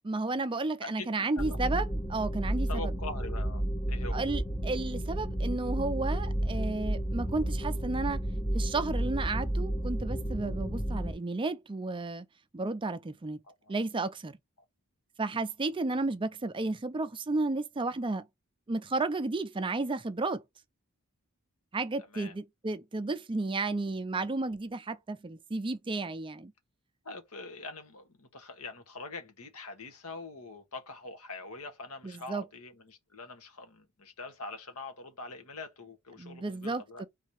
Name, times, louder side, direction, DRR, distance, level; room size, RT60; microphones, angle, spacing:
voice 1, 0.0-2.9 4.1-8.2 8.5-12.3 12.5-13.4 13.7-14.4 15.2-18.3 18.7-20.4 21.7-26.5 32.0-32.5 36.2-37.1, right 3 dB, 25° right, 0.4 m, -33 dB
sound 1, 1.4-11.1, right 1 dB, 10° left, 0.7 m, -32 dB
voice 2, 2.7-4.2 13.5-13.7 22.1-22.3 27.0-37.0, left 3 dB, 85° left, 1.4 m, -44 dB
4.0 x 2.8 x 4.7 m
head